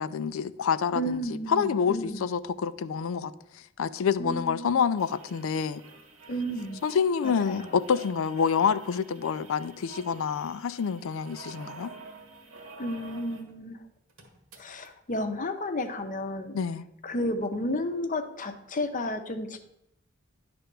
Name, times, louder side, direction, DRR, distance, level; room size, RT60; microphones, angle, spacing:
voice 1, 0.0-3.3 3.8-5.8 6.8-11.9 16.5-16.9, left 6 dB, 70° left, 0.4 m, -27 dB
voice 2, 0.9-2.3 4.2-4.8 6.3-6.9 7.2-7.8 12.8-13.8 14.6-16.6 17.0-19.6, left 1 dB, 40° left, 0.7 m, -32 dB
sound 1, 5.0-13.5 13.8-13.9 14.1-14.9 15.9-16.0, right 3 dB, 75° right, 1.5 m, -49 dB
10.0 x 3.4 x 6.7 m
head